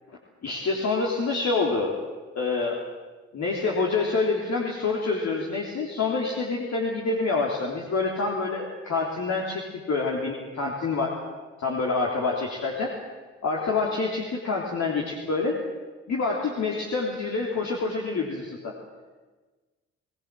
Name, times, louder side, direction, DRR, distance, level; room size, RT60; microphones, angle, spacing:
voice 1, 0.4-1.9 2.3-2.8 3.3-11.2 11.6-12.9 13.4-15.6 16.1-18.7, left 3 dB, 60° left, -1 dB, 3.4 m, -27 dB
22.0 x 18.0 x 7.6 m, 1.3 s
supercardioid pair, 50°, 30 cm